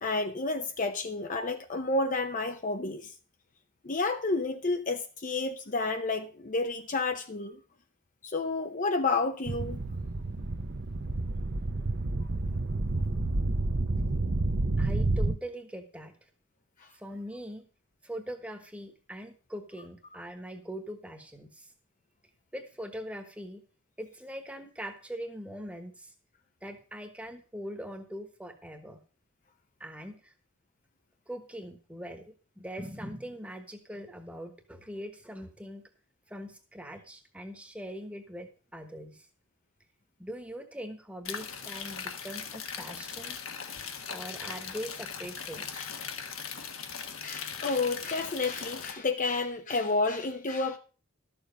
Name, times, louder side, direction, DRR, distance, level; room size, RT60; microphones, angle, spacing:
voice 1, 0.0-3.1 3.8-7.6 8.2-9.8 45.7-45.9 47.2-50.8, left 3 dB, 35° left, 0.6 m, -30 dB
sound 1, 9.5-15.4, right 2 dB, 50° right, 0.8 m, -29 dB
voice 2, 14.8-16.1 17.0-17.7 18.0-21.6 22.5-23.6 24.0-26.1 26.6-29.0 29.8-30.3 31.3-35.9 36.3-39.2 40.2-43.4 44.1-45.9, equal, 5° right, 1.2 m, -42 dB
sound 2, 41.2-48.9, left 7 dB, 75° left, 1.3 m, -39 dB
12.5 x 7.0 x 5.3 m
head